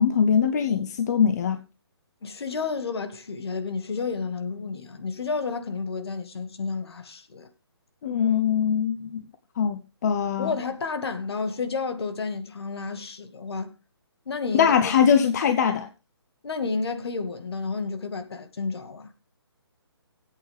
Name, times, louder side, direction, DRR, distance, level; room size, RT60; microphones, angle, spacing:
voice 1, 0.0-1.6 8.0-9.3 9.6-10.5 14.5-15.9, left 7 dB, 40° left, 0.7 m, -22 dB
voice 2, 2.2-7.5 10.4-13.7 14.2-14.8 16.4-19.1, left 4 dB, 65° left, 1.8 m, -31 dB
17.5 x 8.4 x 3.3 m
hypercardioid pair, 155°, 14 cm